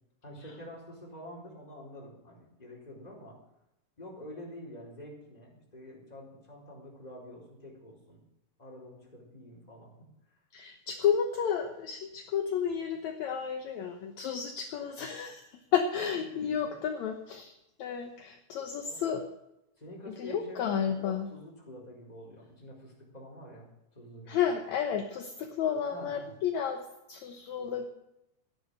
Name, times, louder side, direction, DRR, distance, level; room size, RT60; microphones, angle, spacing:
voice 1, 0.2-3.4 4.0-8.2 8.6-10.4 12.8-12.9 16.0-16.8 18.8-19.0 19.8-24.4 25.9-26.3, left 1 dB, 10° left, -2 dB, 4.3 m, -47 dB
voice 2, 10.5-15.4 15.7-17.5 17.8-19.2 20.2-21.3 24.3-26.8 27.1-27.9, left 8 dB, 65° left, 5 dB, 2.2 m, -31 dB
14.5 x 10.5 x 6.5 m, 0.86 s
omnidirectional pair, 3.8 m